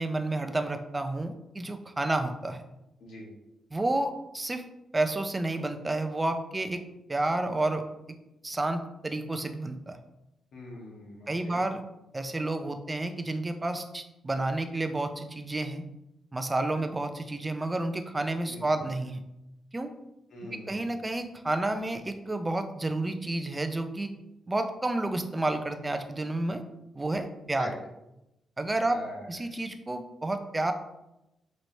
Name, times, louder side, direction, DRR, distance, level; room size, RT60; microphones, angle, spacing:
voice 1, 0.0-2.6 3.7-4.6 4.9-6.8 7.1-7.8 8.4-10.0 11.3-11.8 12.1-15.8 16.3-19.2 19.7-19.9 20.7-24.1 24.5-26.6 27.0-27.7 28.6-29.0 29.3-30.7, right 2 dB, 20° right, 7 dB, 0.4 m, -30 dB
voice 2, 10.5-11.6 18.5-18.8 20.3-21.2 27.5-27.7 28.8-29.5, left 1 dB, 75° left, -2 dB, 1.2 m, -43 dB
4.3 x 3.2 x 2.6 m, 0.90 s
cardioid pair, 105°, 0 cm